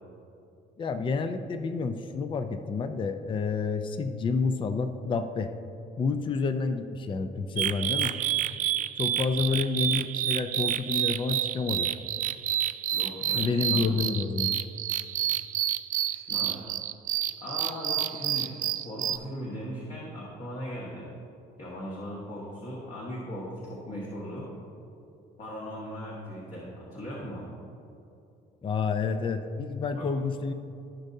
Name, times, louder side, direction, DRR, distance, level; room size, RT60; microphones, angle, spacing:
voice 1, 0.8-5.5 6.0-8.1 9.0-11.9 13.3-14.5 28.6-30.5, left 4 dB, 30° left, 9 dB, 0.5 m, -29 dB
sound 1, 7.6-19.2, right 11 dB, 50° right, 0.4 m, -29 dB
voice 2, 12.9-13.9 16.1-16.6 17.4-21.1 21.6-24.5 25.4-27.5 29.9-30.1, equal, 45° left, -6 dB, 1.7 m, -38 dB
15.5 x 5.3 x 2.7 m, 2.6 s
cardioid pair, 110°, 17 cm